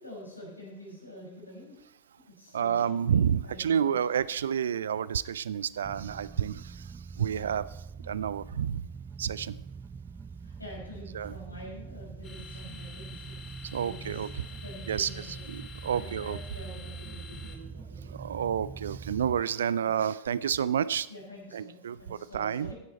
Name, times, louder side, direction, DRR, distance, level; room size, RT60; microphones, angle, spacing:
voice 1, 0.0-1.8 2.3-2.8 3.4-4.2 10.4-13.4 13.8-14.2 14.6-15.4 15.9-18.1 19.8-19.9 21.1-22.7, equal, 80° left, -2 dB, 5.3 m, -46 dB
voice 2, 2.5-6.9 7.2-7.6 8.0-8.8 9.2-9.6 11.1-11.3 13.7-14.3 14.9-16.4 18.1-21.1 21.5-22.7, right 8 dB, 65° right, 19 dB, 0.5 m, -29 dB
sound 1, 5.8-19.4, right 5 dB, 15° right, 0.5 m, -43 dB
sound 2, 12.2-17.6, left 6 dB, 25° left, 2.2 m, -48 dB
15.5 x 11.0 x 4.3 m, 0.89 s
figure-of-eight pair, 90°, 0 cm